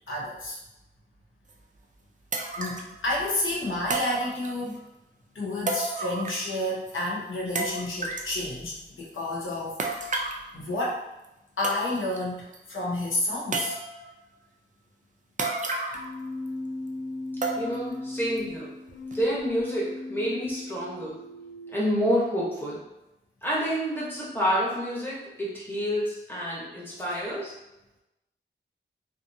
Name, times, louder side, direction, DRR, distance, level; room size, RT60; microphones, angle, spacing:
voice 1, 0.1-0.6 2.6-4.8 5.3-10.1 10.5-11.1 11.6-13.8, left 1 dB, 80° left, -5 dB, 0.8 m, -30 dB
sound 1, 1.5-1.6 2.3-2.9 3.9-4.8 5.7-6.6 6.9-7.0 7.6-8.3 9.8-10.4 11.2-11.3 11.6-12.2 12.5-12.6 13.5-14.1 15.4-16.2 16.5-16.6 17.4-17.9 18.4-18.5 19.1-19.2, right 3 dB, 40° right, 0.4 m, -31 dB
Keyboard (musical), 15.9-21.9, left 2 dB, 55° left, 0.5 m, -37 dB
voice 2, 17.6-18.7 19.1-21.2 21.7-22.8 23.4-27.5, equal, 10° left, -7 dB, 1.0 m, -28 dB
2.6 x 2.4 x 2.6 m, 0.92 s
wide cardioid pair, 80°, 20 cm